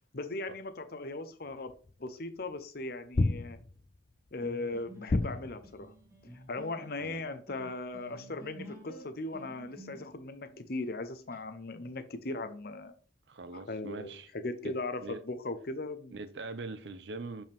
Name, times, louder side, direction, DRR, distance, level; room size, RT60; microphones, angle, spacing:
voice 1, 0.1-1.7 2.0-3.6 4.3-5.9 6.3-12.9 13.7-16.2, left 2 dB, 55° left, 0.8 m, -38 dB
sound 1, 1.9-2.0 3.1-4.0 5.1-5.8, left 2 dB, 35° left, 0.4 m, -30 dB
sound 2, 4.4-11.4, equal, 15° right, 2.4 m, -51 dB
voice 2, 13.3-14.3 14.6-15.2 16.1-17.4, right 3 dB, 65° right, 0.6 m, -42 dB
7.2 x 5.4 x 3.5 m
head